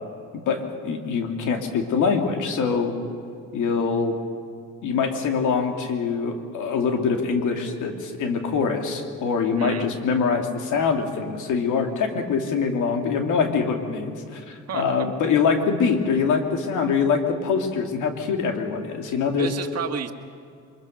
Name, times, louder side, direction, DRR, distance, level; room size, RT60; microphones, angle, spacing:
voice 1, 0.3-3.0 3.5-4.2 4.8-19.5, left 5 dB, 80° left, 4 dB, 2.6 m, -24 dB
voice 2, 9.6-9.9 14.5-15.1 19.4-20.1, right 8 dB, 55° right, 4 dB, 1.8 m, -32 dB
24.0 x 22.5 x 6.5 m, 2.4 s
cardioid pair, 90°, 30 cm